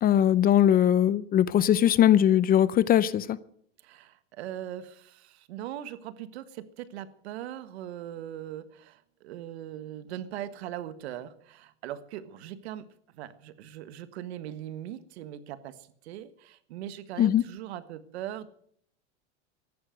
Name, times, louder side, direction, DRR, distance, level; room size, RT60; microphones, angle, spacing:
voice 1, 0.0-3.4 17.2-17.4, left 10 dB, 25° left, 0.6 m, -21 dB
voice 2, 3.8-12.9 13.1-18.5, right 11 dB, 75° right, 1.7 m, -40 dB
15.0 x 11.0 x 7.8 m
supercardioid pair, 125°, 33 cm